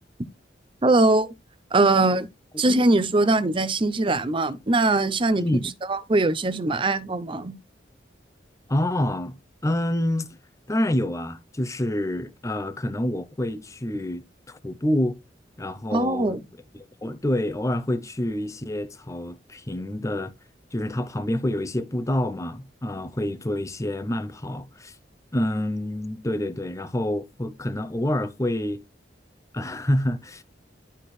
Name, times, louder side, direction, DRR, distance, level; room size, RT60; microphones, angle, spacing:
voice 1, 0.8-1.3 1.7-2.3 2.6-5.4 5.9-7.5 15.9-16.4, right 2 dB, 30° right, 0.6 m, -21 dB
voice 2, 8.7-9.3 9.6-10.3 10.7-15.2 15.6-16.4 17.0-20.3 20.7-25.0 25.3-28.8 29.5-30.4, left 1 dB, 15° left, 0.6 m, -27 dB
12.0 x 4.3 x 3.2 m
head